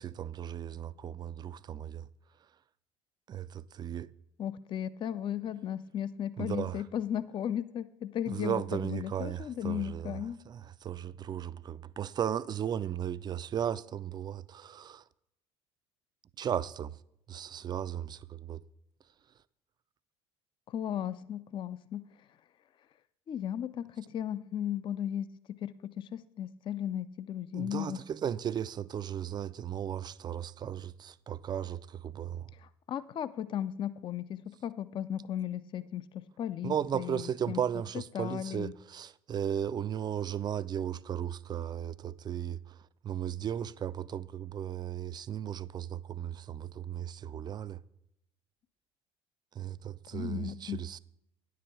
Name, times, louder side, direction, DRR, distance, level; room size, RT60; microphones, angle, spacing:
voice 1, 0.0-2.1 3.3-4.1 6.4-6.8 8.3-15.0 16.4-17.0 17.3-18.6 27.5-32.5 36.6-47.8 49.5-51.0, right 9 dB, 30° right, 0.4 m, -36 dB
voice 2, 4.4-10.4 20.7-22.0 23.3-25.3 25.6-28.0 32.6-37.6 38.1-38.7 50.1-50.8, left 10 dB, 35° left, 0.4 m, -36 dB
10.0 x 4.7 x 7.1 m
figure-of-eight pair, 60°, 15 cm